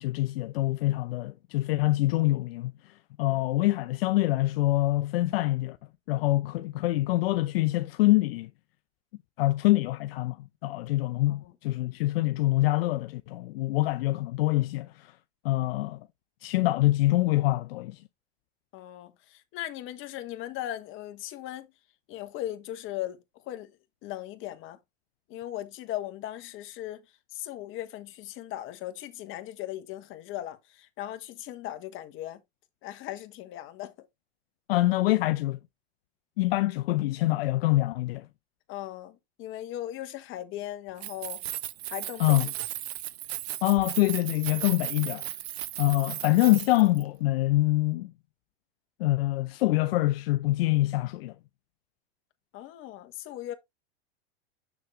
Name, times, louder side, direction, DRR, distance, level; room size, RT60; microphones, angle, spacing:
voice 1, 0.0-2.9 3.2-5.8 6.1-8.5 9.4-10.4 10.6-15.1 15.4-16.0 16.4-18.0 34.7-35.6 36.4-38.3 42.2-42.5 43.6-45.3 45.8-48.1 49.0-51.3, left 18 dB, 65° left, 0.6 m, -25 dB
voice 2, 18.7-21.7 22.1-23.2 23.5-23.7 24.0-24.8 25.3-27.0 27.3-32.4 32.8-34.1 38.7-41.4 41.9-42.5 52.5-53.5, left 13 dB, 40° left, 1.4 m, -38 dB
Keys jangling, 40.9-47.0, right 14 dB, 75° right, 0.8 m, -36 dB
7.0 x 6.4 x 3.2 m
supercardioid pair, 125°, 32 cm